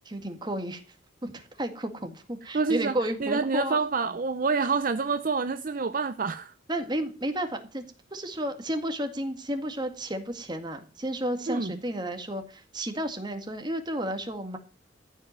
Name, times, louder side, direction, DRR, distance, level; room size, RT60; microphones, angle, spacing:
voice 1, 0.1-0.8 1.2-3.8 6.7-7.8 8.1-14.6, right 1 dB, 25° right, 1.9 m, -32 dB
voice 2, 2.5-6.5 11.5-11.8, right 4 dB, 45° right, 0.6 m, -27 dB
14.5 x 5.5 x 9.6 m
head